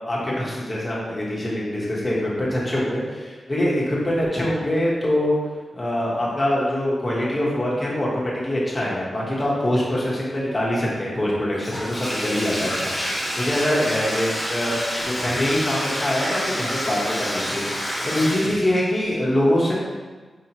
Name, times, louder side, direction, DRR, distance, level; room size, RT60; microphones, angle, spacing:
voice 1, 0.0-5.4 5.7-14.7 15.1-19.7, left 1 dB, 20° left, -6 dB, 0.9 m, -24 dB
Bathtub (filling or washing), 11.6-18.8, equal, ahead, 1.3 m, -28 dB
4.9 x 2.8 x 2.8 m, 1.3 s
wide cardioid pair, 150°, 0 cm